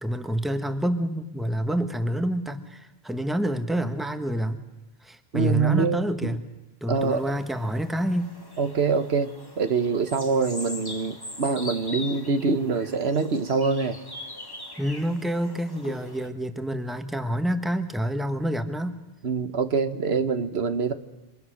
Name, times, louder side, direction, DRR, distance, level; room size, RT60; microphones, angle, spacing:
voice 1, 0.0-4.6 5.0-6.4 6.8-8.3 14.8-19.0, equal, ahead, 8 dB, 1.3 m, -28 dB
voice 2, 5.3-6.4 6.9-7.4 8.6-9.3 9.6-14.0 19.2-20.9, right 5 dB, 85° right, 9 dB, 1.5 m, -25 dB
sound 1, 7.0-16.3, left 2 dB, 20° left, 1.7 m, -41 dB
29.5 x 25.5 x 6.5 m, 1.1 s
omnidirectional pair, 1.0 m